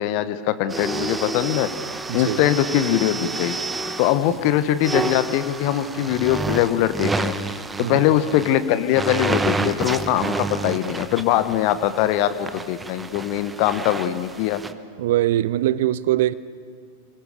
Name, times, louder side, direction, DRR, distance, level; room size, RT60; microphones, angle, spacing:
voice 1, 0.0-1.7 2.1-3.5 4.0-7.4 7.8-14.6, left 12 dB, 45° left, 1.0 m, -22 dB
sound 1, 0.7-14.7, right 3 dB, 10° right, 1.1 m, -30 dB
voice 2, 2.1-2.4 7.8-8.1 15.0-16.3, right 14 dB, 55° right, 0.6 m, -22 dB
28.5 x 22.0 x 6.7 m
figure-of-eight pair, 90°, 0 cm